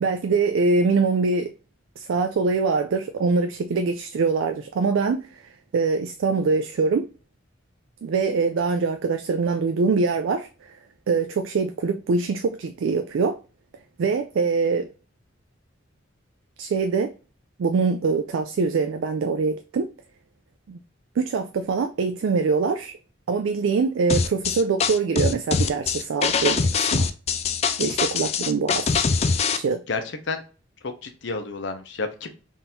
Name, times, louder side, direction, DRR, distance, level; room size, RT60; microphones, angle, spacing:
voice 1, 0.0-1.5 2.0-5.3 5.7-7.1 8.0-10.5 11.1-13.4 14.0-14.9 16.6-17.1 17.6-19.9 20.7-20.8 21.2-23.0 23.3-27.1 27.8-28.9 29.5-29.8, right 4 dB, 75° right, 0.3 m, -23 dB
sound 1, 24.1-29.6, left 5 dB, 35° left, 0.3 m, -23 dB
voice 2, 29.9-30.4 30.8-32.3, left 3 dB, 65° left, 0.7 m, -30 dB
3.6 x 2.6 x 4.3 m
head